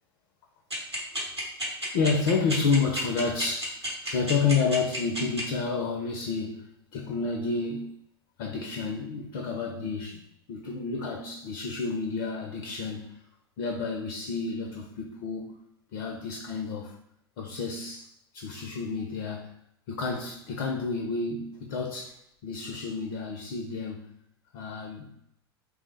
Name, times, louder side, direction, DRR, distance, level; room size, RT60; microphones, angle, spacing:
sound 1, 0.7-5.4, equal, 90° right, 1.0 m, -31 dB
voice 1, 1.8-7.9 8.4-10.2 10.5-13.1 13.6-15.6 15.9-17.0 17.4-19.5 19.9-22.2 22.4-24.1 24.5-25.1, left 4 dB, 50° left, 3 dB, 0.5 m, -30 dB
3.2 x 2.0 x 3.2 m, 0.76 s
figure-of-eight pair, 85°, 14 cm